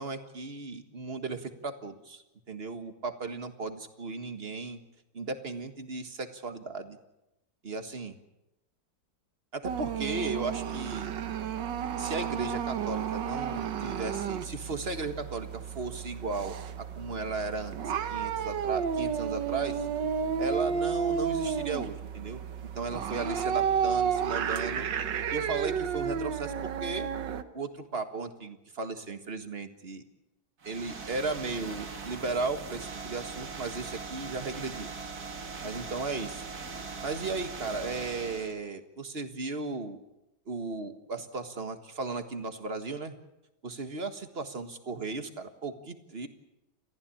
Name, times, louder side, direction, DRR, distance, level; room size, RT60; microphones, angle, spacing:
voice 1, 0.0-4.8 5.1-7.0 7.6-8.1 9.5-11.1 12.0-17.8 18.1-19.9 20.4-22.4 22.8-24.9 25.3-27.1 27.5-30.0 30.6-34.9 35.6-36.4 37.0-40.0 40.5-43.1 43.6-46.3, right 3 dB, 35° right, 8 dB, 1.8 m, -36 dB
sound 1, 9.6-27.4, right 7 dB, 85° right, 1.8 m, -32 dB
sound 2, 30.6-38.6, right 4 dB, 60° right, 2.5 m, -40 dB
29.5 x 15.0 x 8.6 m, 0.93 s
omnidirectional pair, 1.9 m